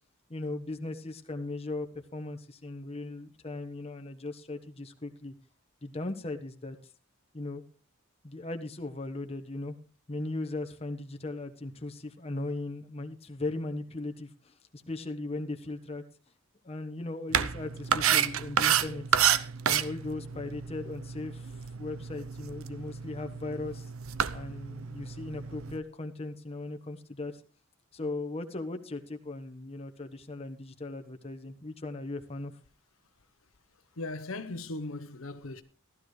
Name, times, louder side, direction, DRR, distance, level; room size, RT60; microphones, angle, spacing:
voice 1, 0.3-5.3 5.8-6.8 7.3-7.6 8.2-9.7 10.1-16.0 16.6-19.0 19.6-23.9 24.3-27.4 27.9-32.5, left 2 dB, 30° left, 1.2 m, -38 dB
sound 1, 17.3-25.8, right 9 dB, 80° right, 0.7 m, -30 dB
voice 2, 34.0-35.6, left 2 dB, 75° left, 0.9 m, -38 dB
15.5 x 12.5 x 3.2 m
head